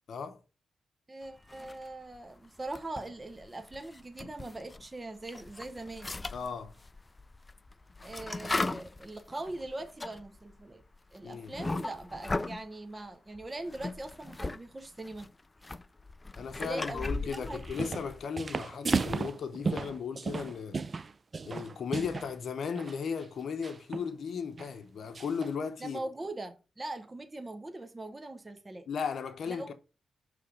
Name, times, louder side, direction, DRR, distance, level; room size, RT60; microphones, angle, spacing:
voice 1, 0.1-0.4 6.3-6.7 11.2-11.5 16.4-20.8 21.4-26.0 28.9-29.7, left 6 dB, 70° left, 0.8 m, -36 dB
voice 2, 1.1-6.2 8.0-10.8 11.1-15.3 16.6-17.6 25.8-28.9 29.5-29.7, right 2 dB, 25° right, 0.8 m, -41 dB
sound 1, 1.5-2.2 2.6-4.9 5.2-12.7 13.4-14.6 14.9-18.3, left 2 dB, 25° left, 0.3 m, -38 dB
sound 2, 17.5-18.1 18.4-22.3 22.7-23.0 23.6-24.1 24.6-24.7 25.1-25.5, right 4 dB, 40° right, 0.4 m, -34 dB
6.5 x 3.3 x 5.0 m
cardioid pair, 80°, 0 cm